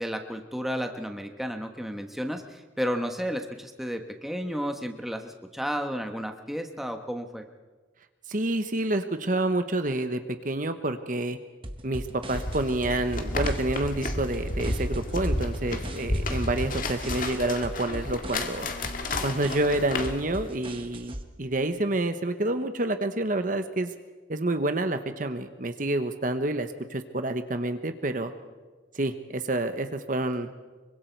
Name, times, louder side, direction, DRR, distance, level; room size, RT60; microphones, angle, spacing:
voice 1, 0.0-7.4, equal, ahead, 5 dB, 1.3 m, -32 dB
voice 2, 8.3-10.2 10.4-11.4 11.8-18.7 19.2-23.9 24.3-28.3 28.9-30.5, right 2 dB, 45° right, 8 dB, 1.1 m, -28 dB
sound 1, 11.6-21.2, right 1 dB, 30° right, 1.3 m, -39 dB
sound 2, 12.3-20.5, left 2 dB, 45° left, 1.8 m, -32 dB
25.5 x 24.0 x 4.6 m, 1.3 s
head